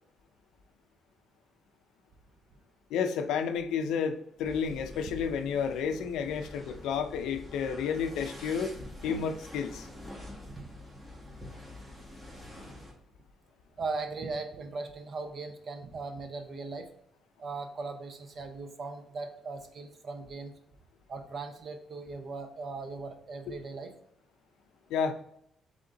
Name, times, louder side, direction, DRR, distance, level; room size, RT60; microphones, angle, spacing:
voice 1, 2.9-8.7 9.0-9.9 24.9-25.2, left 6 dB, 90° left, 7 dB, 0.4 m, -31 dB
sound 1, 4.4-12.9, left 1 dB, 20° right, 1.5 m, -46 dB
voice 2, 13.8-16.9 17.4-20.5 21.1-23.9, right 3 dB, 50° right, 6 dB, 0.7 m, -39 dB
3.8 x 3.5 x 3.7 m, 0.72 s
cardioid pair, 90°, 0 cm